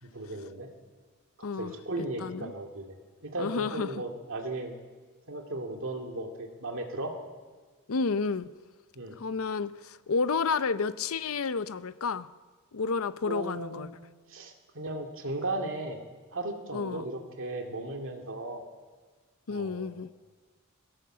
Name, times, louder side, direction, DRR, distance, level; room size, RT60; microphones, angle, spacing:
voice 1, 0.0-0.7 1.5-2.9 3.2-4.8 5.3-7.1 8.9-9.2 13.3-13.9 14.3-16.0 16.3-18.6 19.5-20.2, right 2 dB, 65° right, 3 dB, 2.4 m, -36 dB
voice 2, 1.4-1.7 2.2-2.5 3.4-3.9 7.9-8.5 9.2-12.3 12.7-13.9 16.7-17.1 19.5-20.1, left 4 dB, 70° left, 14 dB, 0.6 m, -31 dB
20.5 x 16.5 x 7.6 m, 1.5 s
head